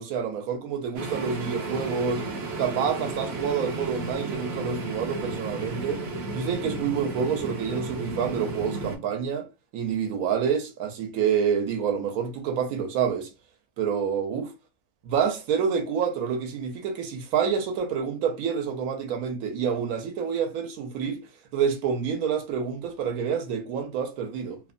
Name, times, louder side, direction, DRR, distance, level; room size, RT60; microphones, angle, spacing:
voice 1, 0.0-2.2 2.6-6.0 6.3-9.5 9.7-13.3 13.8-14.5 15.0-21.2 21.5-24.6, right 7 dB, 90° right, 1.1 m, -28 dB
sound 1, 0.9-9.0, right 3 dB, 60° right, 0.8 m, -33 dB
2.9 x 2.1 x 2.5 m
omnidirectional pair, 1.5 m